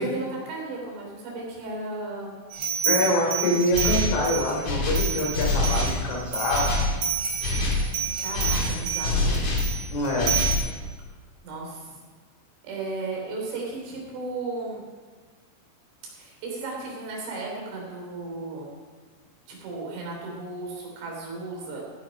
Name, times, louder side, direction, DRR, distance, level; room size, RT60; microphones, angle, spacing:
voice 1, 0.0-2.4 8.2-9.4 11.4-11.9 12.6-14.8 16.1-18.7 19.5-21.8, right 3 dB, 80° right, -2 dB, 6.1 m, -35 dB
sound 1, 2.5-4.5 4.9-10.6, right 7 dB, 35° right, 4.3 m, -29 dB
voice 2, 2.9-6.7 9.9-10.3, left 1 dB, 85° left, -2 dB, 6.2 m, -25 dB
sound 2, 3.7-4.2 4.6-6.0 6.5-6.9 7.4-7.9 8.3-9.7 10.2-10.6, left 2 dB, 45° left, 3.4 m, -25 dB
16.0 x 9.8 x 5.4 m, 1.4 s
omnidirectional pair, 5.5 m